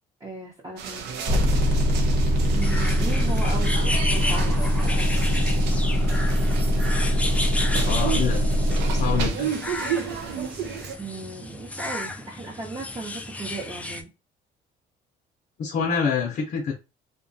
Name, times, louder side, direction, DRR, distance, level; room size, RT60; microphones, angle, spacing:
voice 1, 0.2-1.3 2.5-5.2 11.0-14.1, right 3 dB, 20° right, -3 dB, 0.7 m, -36 dB
sound 1, 0.8-11.0, right 7 dB, 85° right, 0.5 m, -34 dB
sound 2, 1.3-9.3, equal, 60° right, 1.0 m, -22 dB
sound 3, 2.6-14.0, left 2 dB, 10° left, 0.3 m, -33 dB
voice 2, 7.8-8.4 8.9-9.5 15.6-16.8, left 6 dB, 55° left, 2 dB, 0.6 m, -26 dB
2.7 x 2.2 x 2.6 m, 0.28 s
cardioid pair, 110°, 17 cm